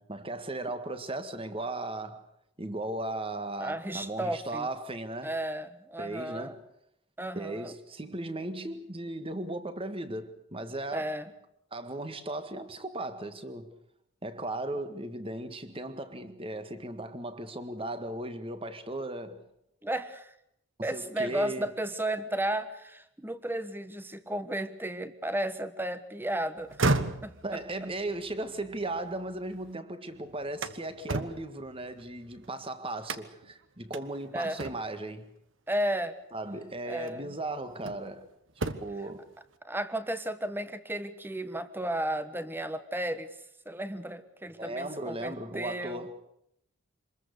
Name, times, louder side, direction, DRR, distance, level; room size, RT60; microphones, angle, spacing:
voice 1, 0.0-2.3 2.6-5.4 6.0-6.6 7.3-11.1 11.7-13.7 14.2-19.4 20.9-21.7 27.4-35.3 36.3-38.3 38.8-39.3 44.6-46.2, right 2 dB, 25° right, 1.7 m, -37 dB
voice 2, 3.6-4.7 5.2-6.6 7.2-7.7 10.9-11.3 19.8-20.3 20.8-26.8 27.2-27.6 34.3-34.6 35.7-36.2 36.8-37.3 39.6-43.4 43.6-46.2, right 1 dB, 10° right, 1.2 m, -34 dB
sound 1, 26.6-29.7 30.1-32.5 33.0-33.5 33.9-34.0 34.6-35.1 36.3-36.5 37.0-38.2 38.5-39.1, right 2 dB, 60° right, 1.3 m, -34 dB
26.0 x 21.5 x 6.7 m
head